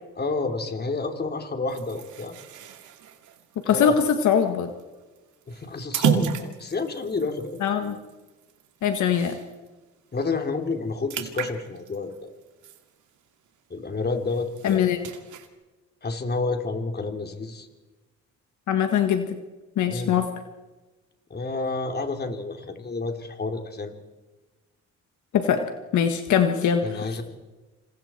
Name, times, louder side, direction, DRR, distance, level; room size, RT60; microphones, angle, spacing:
voice 1, 0.2-2.3 3.7-4.0 5.5-7.6 10.1-12.3 13.7-14.9 16.0-17.7 19.9-20.2 21.3-23.9 26.8-27.2, left 3 dB, 35° left, 5 dB, 3.2 m, -29 dB
sound 1, 1.7-9.7 10.1-10.2 10.5-13.5 13.9-15.5, right 9 dB, 75° right, 2.5 m, -33 dB
voice 2, 3.7-4.7 7.6-8.0 8.8-9.4 14.6-15.0 18.7-19.4 19.8-20.2 25.3-25.6 25.9-27.0, left 8 dB, 75° left, 6 dB, 1.7 m, -22 dB
28.0 x 27.5 x 4.5 m, 1.2 s
cardioid pair, 90°, 30 cm